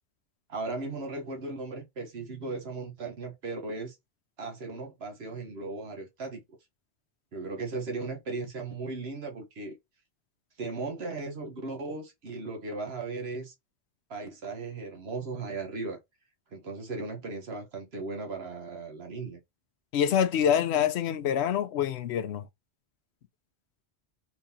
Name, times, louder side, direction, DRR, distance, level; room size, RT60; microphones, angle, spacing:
voice 1, 0.5-4.0 4.4-6.4 7.3-9.8 10.6-13.5 14.1-16.0 16.5-19.4, right 3 dB, 75° right, 1.3 m, -37 dB
voice 2, 19.9-22.5, left 9 dB, 90° left, 0.9 m, -26 dB
4.4 x 3.6 x 2.7 m
omnidirectional pair, 1.1 m